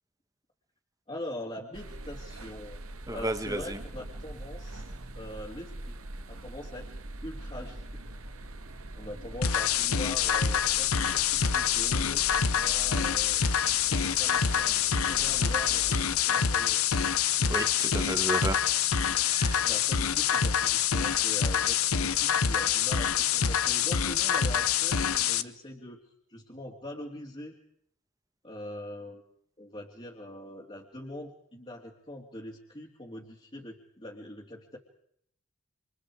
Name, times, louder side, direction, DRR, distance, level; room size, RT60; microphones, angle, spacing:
voice 1, 1.1-2.8 3.1-5.9 6.3-6.9 7.2-7.9 8.4-8.7 9.0-13.4 13.7-14.7 15.1-16.8 19.6-26.0 26.3-27.5 28.4-29.2 29.6-34.8, left 1 dB, 25° left, -3 dB, 2.9 m, -43 dB
sound 1, 1.7-16.1, right 1 dB, 90° right, 2.3 m, -42 dB
voice 2, 3.1-3.8 17.5-18.6 19.2-19.6, right 1 dB, 15° right, 10 dB, 1.6 m, -33 dB
sound 2, 9.4-25.4, left 8 dB, 90° left, 1.0 m, -26 dB
29.0 x 27.0 x 4.9 m, 0.69 s
head